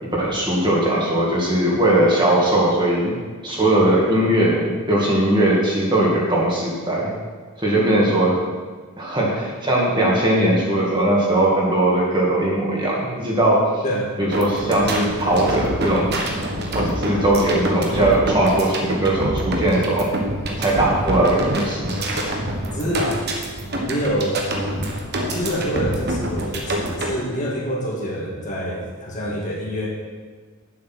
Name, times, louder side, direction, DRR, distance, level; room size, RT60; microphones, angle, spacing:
voice 1, 0.0-3.2 3.4-7.1 7.6-8.3 9.0-13.8 14.2-16.2 16.7-20.1 20.6-22.0, right 1 dB, 20° right, -4 dB, 2.2 m, -19 dB
voice 2, 7.7-8.2 13.8-14.2 22.7-23.2 23.8-24.4 25.3-29.9, equal, 35° left, -4 dB, 2.2 m, -26 dB
sound 1, 14.3-27.1, right 1 dB, 50° right, 1.4 m, -26 dB
9.5 x 7.8 x 6.2 m, 1.4 s
head